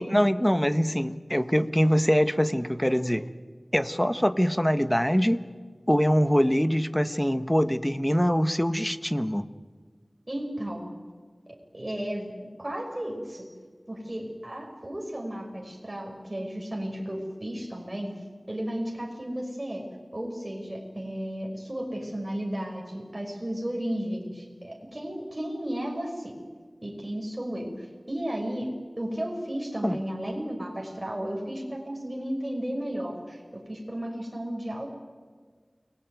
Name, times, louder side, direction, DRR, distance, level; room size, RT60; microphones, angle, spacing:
voice 1, 0.0-3.3 3.7-5.4 5.9-9.4 29.8-30.0, equal, 10° left, 12 dB, 1.3 m, -23 dB
voice 2, 10.3-10.9 11.5-12.3 12.6-13.5 13.9-18.1 18.5-19.9 20.1-26.4 26.8-34.9, equal, 30° right, 0 dB, 6.1 m, -34 dB
29.5 x 20.5 x 9.2 m, 1.5 s
wide cardioid pair, 45°, 0 cm